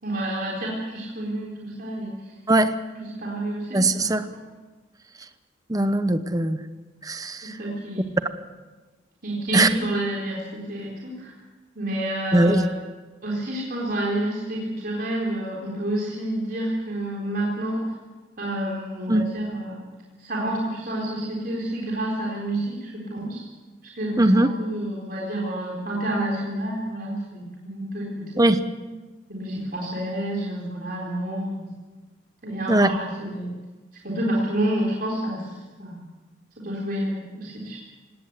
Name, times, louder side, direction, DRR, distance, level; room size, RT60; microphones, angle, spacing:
voice 1, 0.0-2.3 3.2-4.1 7.4-8.1 9.2-11.3 11.8-12.7 13.2-17.8 18.4-19.8 20.2-23.4 23.9-28.2 29.3-31.7 32.4-33.5 34.0-36.0 36.6-37.8, right 1 dB, 50° right, -3 dB, 4.1 m, -29 dB
voice 2, 3.7-4.3 5.7-6.6 7.0-7.6 9.5-9.7 12.3-12.7 19.1-19.3 24.2-24.5 28.4-28.6 32.7-32.9, right 1 dB, 20° right, 10 dB, 0.9 m, -20 dB
18.5 x 18.5 x 8.2 m, 1.2 s
head